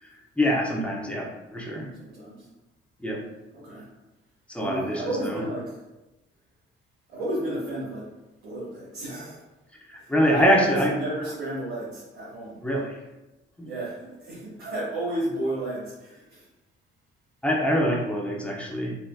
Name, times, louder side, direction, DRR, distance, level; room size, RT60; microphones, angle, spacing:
voice 1, 0.4-1.9 3.0-3.2 4.5-5.4 9.9-11.0 12.6-13.0 13.6-13.7 17.4-19.0, equal, 5° left, -1 dB, 0.8 m, -25 dB
voice 2, 2.0-2.5 3.0-3.2 3.5-3.9 4.6-5.8 7.1-8.1 8.4-9.4 10.0-12.6 13.7-16.5, right 1 dB, 90° right, -8 dB, 0.7 m, -32 dB
3.2 x 2.6 x 2.3 m, 1.1 s
hypercardioid pair, 40°, 30 cm